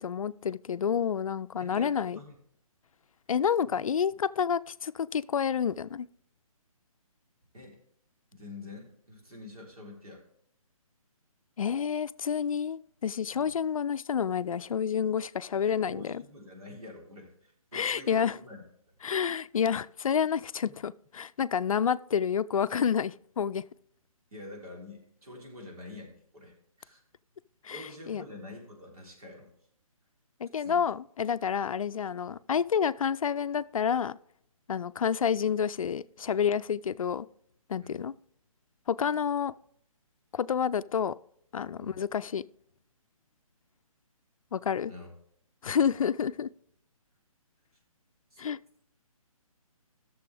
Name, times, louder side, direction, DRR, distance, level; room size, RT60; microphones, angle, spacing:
voice 1, 0.0-2.2 3.3-6.1 11.6-16.2 17.7-18.4 19.0-23.6 27.6-28.2 30.4-34.2 34.7-37.3 37.7-38.1 38.9-39.5 40.3-41.2 41.5-42.4 44.5-44.9 45.6-46.5 48.4-48.6, left 7 dB, 70° left, 0.4 m, -29 dB
voice 2, 1.6-2.3 3.6-3.8 4.1-4.2 7.5-7.8 8.3-10.2 13.3-13.5 15.6-18.6 24.3-27.0 27.7-29.5 30.6-30.8 37.8-38.0 41.8-42.0 44.9-45.1 45.7-45.8 48.3-48.4, left 2 dB, 80° right, 3.6 m, -47 dB
13.0 x 6.9 x 3.4 m
hypercardioid pair, 150°, 19 cm